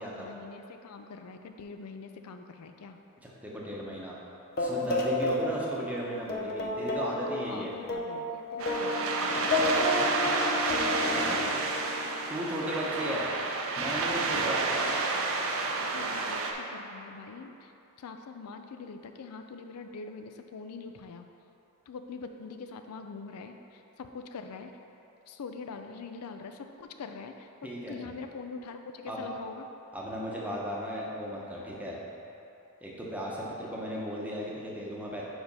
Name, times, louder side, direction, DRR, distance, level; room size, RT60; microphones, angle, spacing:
voice 1, 0.0-3.0 7.5-9.9 10.9-11.6 15.9-17.7 18.0-21.3 21.9-24.7 25.3-29.7, left 4 dB, 85° left, 6 dB, 0.4 m, -44 dB
voice 2, 3.2-4.2 4.6-7.7 10.6-11.5 12.3-13.3 13.7-14.8 27.6-27.9 29.1-29.2 29.9-32.0 32.8-35.2, equal, 5° right, -5 dB, 0.9 m, -36 dB
sound 1, 4.6-5.9 6.3-12.3, left 2 dB, 45° left, 0.7 m, -31 dB
sound 2, 8.6-16.5, right 3 dB, 65° right, 0.6 m, -30 dB
5.0 x 4.9 x 5.4 m, 2.8 s
head